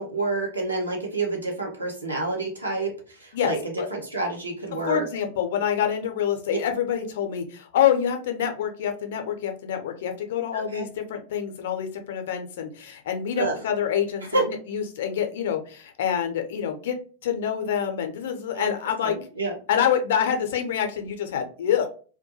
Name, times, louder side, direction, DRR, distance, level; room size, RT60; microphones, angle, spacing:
voice 1, 0.0-3.6 3.9-5.0 10.5-10.9 13.4-13.5 14.3-14.4 18.5-18.7 19.0-19.5, right 2 dB, 85° right, -1 dB, 0.8 m, -28 dB
voice 2, 4.9-17.0 17.2-19.2 19.7-21.9, left 9 dB, 55° left, 5 dB, 0.4 m, -26 dB
2.2 x 2.2 x 2.8 m, 0.39 s
figure-of-eight pair, 90°, 0 cm